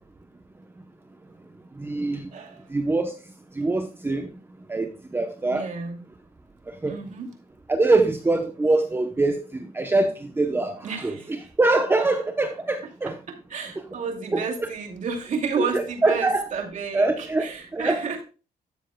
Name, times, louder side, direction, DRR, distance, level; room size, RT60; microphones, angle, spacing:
voice 1, 1.8-2.3 2.7-3.2 3.5-4.3 4.7-5.7 6.7-7.0 7.7-13.2 14.3-14.7 15.6-16.5 16.9-18.0, right 2 dB, 15° right, 0.8 m, -24 dB
voice 2, 2.3-2.7 5.5-6.0 6.9-7.3 10.8-11.3 13.3-18.2, right 5 dB, 50° right, 2.5 m, -31 dB
13.0 x 7.3 x 2.3 m
cardioid pair, 105°, 16 cm